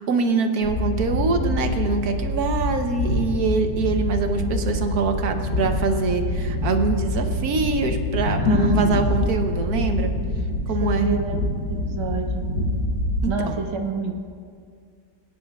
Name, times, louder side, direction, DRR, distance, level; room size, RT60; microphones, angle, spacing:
voice 1, 0.0-10.1 10.7-11.2 13.2-13.6, right 4 dB, 65° right, 6 dB, 1.2 m, -24 dB
sound 1, 0.6-13.2, left 1 dB, 60° left, 2.0 m, -25 dB
voice 2, 8.4-9.0 9.6-9.9 10.7-11.4 11.7-12.6 13.3-14.1, right 3 dB, 40° right, 3 dB, 0.4 m, -29 dB
22.0 x 9.8 x 2.3 m, 2.2 s
omnidirectional pair, 1.9 m